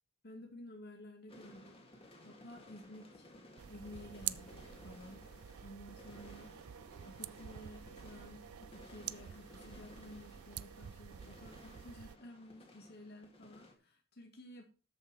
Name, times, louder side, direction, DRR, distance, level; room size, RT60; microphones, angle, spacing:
voice 1, 0.2-1.8 2.2-3.3 3.7-14.6, left 1 dB, 50° left, 1 dB, 2.2 m, -53 dB
sound 1, 1.3-13.7, left 1 dB, 25° left, 1.9 m, -58 dB
sound 2, 3.6-12.2, right 11 dB, 80° right, 0.4 m, -48 dB
13.5 x 5.5 x 4.6 m, 0.33 s
head